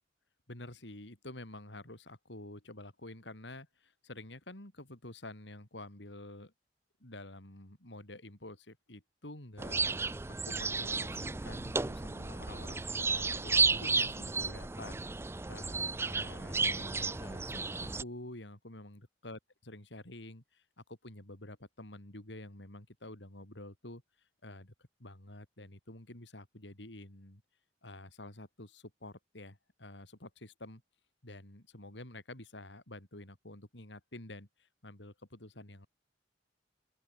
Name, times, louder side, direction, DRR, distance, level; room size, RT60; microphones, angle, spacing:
voice 1, 0.5-6.5 7.0-9.8 10.4-24.0 24.4-27.4 27.8-30.8 31.2-35.9, left 1 dB, 75° left, 4.4 m, -49 dB
sound 1, 9.6-18.0, right 4 dB, 15° right, 0.4 m, -33 dB
open air
head